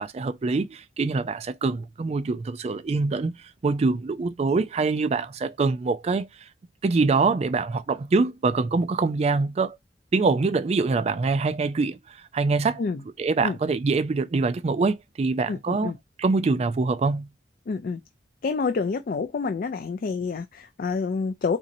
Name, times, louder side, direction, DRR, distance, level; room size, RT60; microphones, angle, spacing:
voice 1, 0.0-6.3 6.8-9.8 10.1-12.8 13.2-15.9 16.2-17.3, right 3 dB, 35° right, 0.3 m, -24 dB
voice 2, 15.5-16.0 17.7-18.0 18.4-21.6, left 4 dB, 50° left, 0.4 m, -28 dB
4.1 x 2.6 x 2.6 m
head